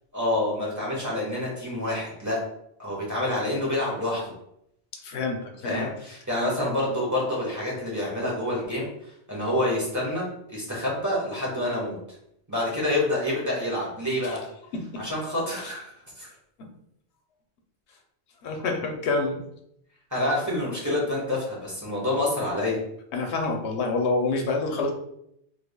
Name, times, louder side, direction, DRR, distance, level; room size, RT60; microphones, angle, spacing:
voice 1, 0.1-2.5 2.8-4.3 5.6-12.0 12.5-14.4 15.0-16.3 20.1-22.8, left 1 dB, 15° right, -5 dB, 1.0 m, -27 dB
voice 2, 5.0-5.9 14.2-14.4 15.6-15.7 18.4-19.4 23.1-24.9, left 3 dB, 80° left, 2 dB, 0.9 m, -27 dB
3.4 x 3.3 x 2.2 m, 0.75 s
omnidirectional pair, 1.1 m